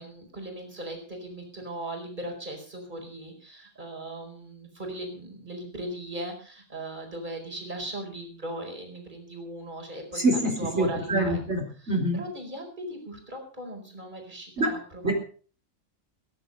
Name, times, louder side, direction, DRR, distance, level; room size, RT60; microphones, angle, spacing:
voice 1, 0.0-11.4 11.8-15.1, right 1 dB, 35° right, 3 dB, 4.9 m, -38 dB
voice 2, 10.1-12.2 14.6-14.7 15.0-15.1, right 1 dB, 50° right, 0 dB, 4.6 m, -25 dB
21.0 x 10.5 x 5.4 m, 0.42 s
omnidirectional pair, 1.5 m